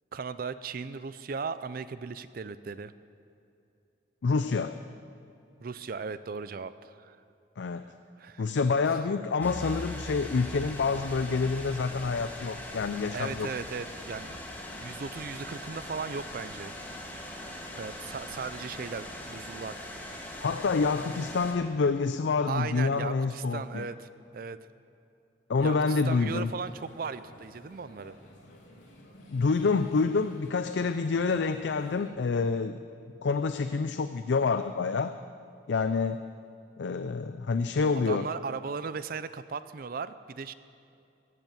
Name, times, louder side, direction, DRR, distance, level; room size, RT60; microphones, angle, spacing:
voice 1, 0.1-2.9 5.6-7.2 7.7-8.5 13.1-14.4 14.8-16.7 17.8-19.8 22.5-24.6 25.6-28.2 38.1-40.5, right 5 dB, 50° right, 14 dB, 0.4 m, -37 dB
voice 2, 4.2-4.8 7.6-7.9 8.4-13.5 20.4-23.9 25.5-26.5 29.3-32.8 33.2-35.2 35.7-36.2 36.8-38.3, left 4 dB, 70° left, 9 dB, 0.4 m, -27 dB
sound 1, 9.4-21.5, left 1 dB, 10° left, 1.5 m, -41 dB
sound 2, 25.6-32.1, left 1 dB, 90° left, 2.5 m, -53 dB
16.0 x 8.3 x 7.5 m, 2.7 s
head